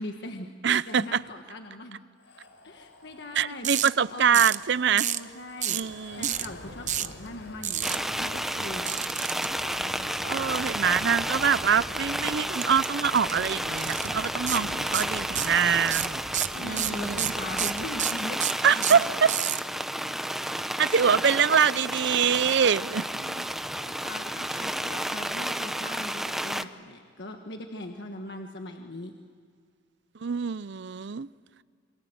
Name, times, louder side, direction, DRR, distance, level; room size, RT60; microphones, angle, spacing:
voice 1, 0.0-0.5 0.9-2.0 2.6-4.4 4.9-5.8 6.1-9.0 14.5-14.8 16.5-19.0 23.2-23.5 23.8-29.1, left 1 dB, 60° left, 1.5 m, -40 dB
voice 2, 0.6-1.2 3.4-5.1 5.7-6.3 10.2-16.2 16.6-17.2 18.6-19.3 20.8-23.1 30.2-31.3, right 7 dB, 65° right, 0.6 m, -24 dB
sound 1, 2.2-18.0, left 1 dB, 85° left, 4.2 m, -46 dB
sound 2, 3.6-3.9 4.3-4.6 5.0-5.2 5.6-5.9 6.2-6.5 6.9-7.1 7.6-8.0 8.9-9.5 12.6-12.9 13.2-13.3 13.8-14.1 14.5-14.6 14.9-15.6 15.9-19.6, right 11 dB, 40° right, 0.8 m, -28 dB
sound 3, 7.8-26.6, equal, ahead, 0.7 m, -32 dB
28.5 x 25.5 x 7.9 m
head